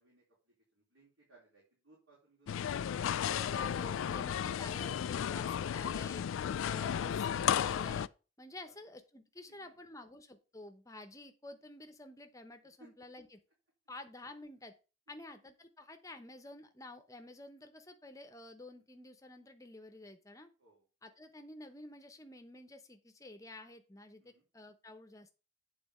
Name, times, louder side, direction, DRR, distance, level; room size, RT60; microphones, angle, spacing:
voice 1, 0.0-3.8 8.6-8.8 9.5-10.1 12.8-12.9 15.1-15.5 20.6-20.9 24.2-24.4, right 2 dB, 70° right, -4 dB, 3.7 m, -65 dB
sound 1, 2.5-8.1, left 9 dB, 75° left, 0.3 m, -34 dB
voice 2, 3.3-6.2 6.6-8.1 8.4-13.3 13.9-14.7 15.1-20.5 21.0-25.3, left 2 dB, 15° left, 7 dB, 0.9 m, -50 dB
8.6 x 4.0 x 6.8 m, 0.33 s
head